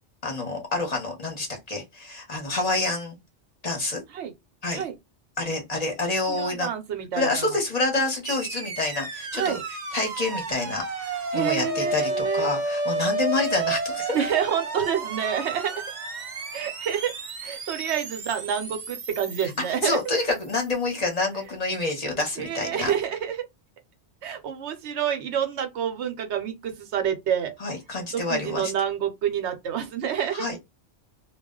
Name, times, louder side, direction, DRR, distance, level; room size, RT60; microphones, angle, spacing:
voice 1, 0.2-3.2 3.6-4.0 4.6-4.8 5.4-6.7 7.1-9.6 9.9-14.2 19.7-22.9 27.6-28.7 30.3-30.6, left 2 dB, 35° left, 0.9 m, -28 dB
voice 2, 6.3-7.6 9.3-9.6 11.3-12.5 14.1-15.8 16.5-17.1 17.4-20.0 22.4-23.5 24.2-27.5 28.1-30.5, right 8 dB, 75° right, 0.9 m, -28 dB
sound 1, 8.2-20.5, right 3 dB, 45° right, 0.7 m, -31 dB
2.3 x 2.1 x 3.6 m
omnidirectional pair, 1.2 m